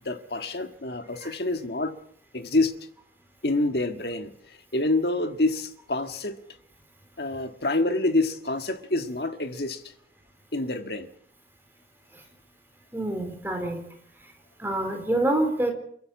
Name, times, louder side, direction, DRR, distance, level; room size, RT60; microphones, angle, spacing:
voice 1, 0.0-1.9 2.3-2.7 3.4-6.4 7.2-9.8 10.5-11.1, left 2 dB, 60° left, 1.7 m, -27 dB
voice 2, 12.9-13.8 14.6-15.7, right 1 dB, 10° right, 3.9 m, -26 dB
28.5 x 11.5 x 8.4 m
head